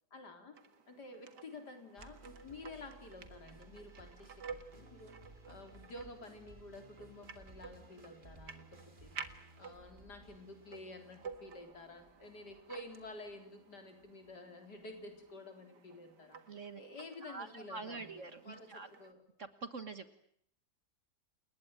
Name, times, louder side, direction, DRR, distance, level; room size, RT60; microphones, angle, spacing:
voice 1, 0.1-0.6 0.9-5.2 5.5-9.3 9.6-16.4 16.8-19.2, left 2 dB, 80° left, 6 dB, 4.5 m, -51 dB
sound 1, 0.5-19.1, right 5 dB, 90° right, 2.3 m, -53 dB
sound 2, 2.0-14.4, right 2 dB, 30° right, 2.6 m, -59 dB
voice 2, 16.5-16.8 17.2-18.9 19.4-20.2, right 4 dB, 50° right, 11 dB, 1.8 m, -45 dB
30.0 x 20.0 x 8.9 m, 0.69 s
omnidirectional pair, 1.8 m